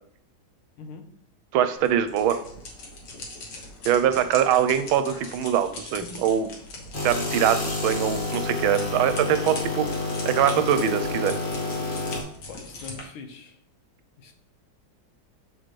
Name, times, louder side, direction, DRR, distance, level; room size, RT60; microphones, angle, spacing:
voice 1, 0.8-1.1 12.5-13.6 14.2-14.3, left 5 dB, 85° left, 5 dB, 1.7 m, -42 dB
voice 2, 1.5-2.4 3.8-6.5 7.0-9.9 10.2-11.4, right 9 dB, 85° right, 10 dB, 1.4 m, -23 dB
sound 1, 1.7-13.0, left 2 dB, 60° left, 1.7 m, -41 dB
sound 2, 6.9-12.2, left 3 dB, 40° left, 0.8 m, -29 dB
7.8 x 4.2 x 3.1 m, 0.62 s
omnidirectional pair, 2.2 m